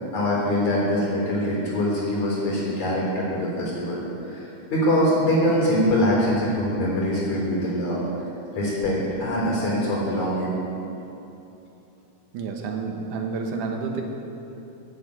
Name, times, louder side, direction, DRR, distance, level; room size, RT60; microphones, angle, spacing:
voice 1, 0.1-4.0 4.3-8.0 8.6-10.6, equal, 65° left, -4 dB, 5.2 m, -23 dB
voice 2, 12.3-14.0, right 4 dB, 85° right, 2 dB, 2.8 m, -29 dB
12.0 x 8.8 x 9.0 m, 2.9 s
omnidirectional pair, 3.5 m